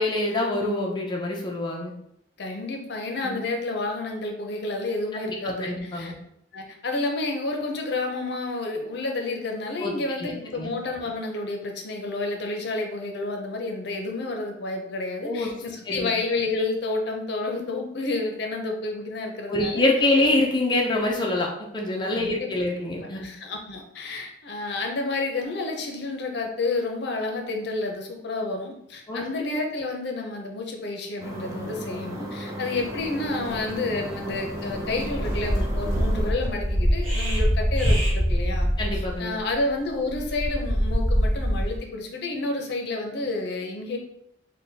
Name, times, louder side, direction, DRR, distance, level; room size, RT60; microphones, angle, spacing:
voice 1, 0.0-1.9 3.2-3.4 5.2-6.1 9.8-9.9 10.2-10.7 15.2-15.5 15.9-16.1 19.5-21.5 21.7-23.3 29.1-29.3 38.8-39.3, left 2 dB, 25° left, -1 dB, 0.5 m, -25 dB
voice 2, 2.4-6.1 6.5-19.9 22.1-22.5 23.1-44.0, left 2 dB, 65° left, 2 dB, 0.6 m, -30 dB
sound 1, 31.2-36.3, right 1 dB, 20° right, 0.6 m, -35 dB
sound 2, 33.0-33.1 33.4-33.6 34.1-34.4 34.7-41.8, equal, 35° right, 1.1 m, -24 dB
3.4 x 2.2 x 4.0 m, 0.75 s
head